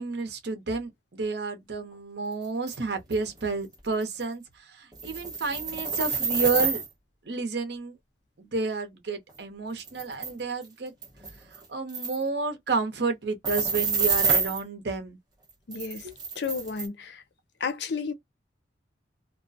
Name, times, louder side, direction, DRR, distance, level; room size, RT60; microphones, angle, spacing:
voice 1, 0.0-4.4 4.7-6.8 7.2-7.9 8.4-10.9 11.7-15.2 16.0-16.1, right 3 dB, 65° right, 0.7 m, -30 dB
sound 1, 2.7-2.8 3.1-3.2 3.7-3.8 4.0-4.2 4.9-6.9 9.3-9.4 9.8-10.3 10.6-10.7 11.0-11.6 11.9-12.2 13.4-14.6 15.7-16.9, right 5 dB, 20° right, 0.9 m, -27 dB
voice 2, 15.7-16.1 16.4-17.2 17.6-18.1, left 5 dB, 70° left, 0.5 m, -32 dB
2.3 x 2.1 x 2.6 m
head